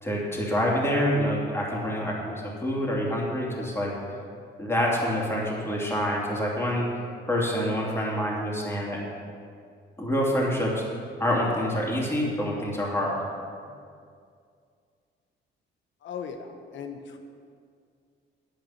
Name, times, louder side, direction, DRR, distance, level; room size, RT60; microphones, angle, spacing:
voice 1, 0.0-4.2 4.6-6.8 7.3-9.0 10.0-10.8 11.2-13.1, equal, 10° left, -4 dB, 2.9 m, -27 dB
voice 2, 16.0-17.2, left 6 dB, 70° left, 5 dB, 1.2 m, -38 dB
10.0 x 9.3 x 5.9 m, 2.3 s
cardioid pair, 90°, 20 cm